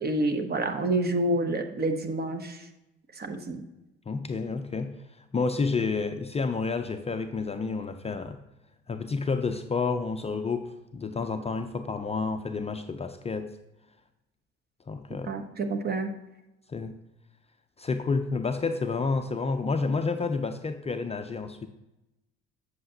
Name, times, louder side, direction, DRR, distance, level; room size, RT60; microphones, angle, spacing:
voice 1, 0.0-2.6 3.2-3.6 15.3-16.1, right 2 dB, 30° right, 6 dB, 1.0 m, -28 dB
voice 2, 4.1-4.9 5.3-8.4 8.9-13.5 14.9-15.4 16.7-16.9 17.8-21.7, left 4 dB, 20° left, 7 dB, 0.5 m, -30 dB
8.1 x 7.5 x 2.8 m, 0.96 s
hypercardioid pair, 60°, 30 cm